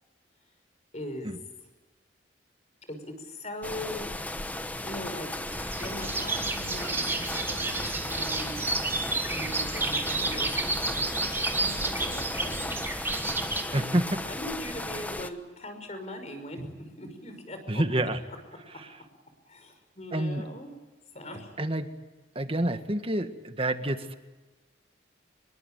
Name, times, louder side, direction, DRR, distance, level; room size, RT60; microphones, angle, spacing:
voice 1, 0.9-1.3 2.9-4.1 4.8-5.4 5.7-8.8 9.3-12.8 13.7-14.0 14.2-17.8 19.5-20.7 21.1-21.5, left 1 dB, 40° left, 7 dB, 5.7 m, -40 dB
sound 1, 3.6-15.3, left 1 dB, 10° left, 1.0 m, -36 dB
sound 2, 5.5-13.6, right 3 dB, 15° right, 2.7 m, -31 dB
voice 2, 13.7-14.2 17.7-18.2 18.7-19.0 20.1-20.4 21.6-21.9 22.4-24.2, right 1 dB, 30° right, 8 dB, 1.7 m, -28 dB
27.0 x 23.0 x 9.1 m, 1.2 s
head